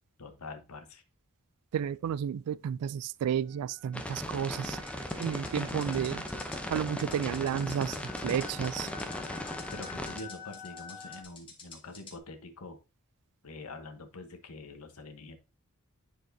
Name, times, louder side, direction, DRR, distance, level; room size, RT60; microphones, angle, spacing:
voice 1, 0.2-1.0 9.7-12.8 13.4-15.4, left 2 dB, 75° left, 1.1 m, -45 dB
voice 2, 1.7-4.8 5.2-6.2 6.7-8.0 8.2-8.9, right 8 dB, 85° right, 0.3 m, -32 dB
sound 1, 3.5-11.2, left 3 dB, 20° right, 1.1 m, -48 dB
sound 2, 3.9-10.2, left 1 dB, 5° left, 0.7 m, -38 dB
sound 3, 4.6-12.2, left 4 dB, 25° left, 1.6 m, -50 dB
10.5 x 4.5 x 2.7 m
head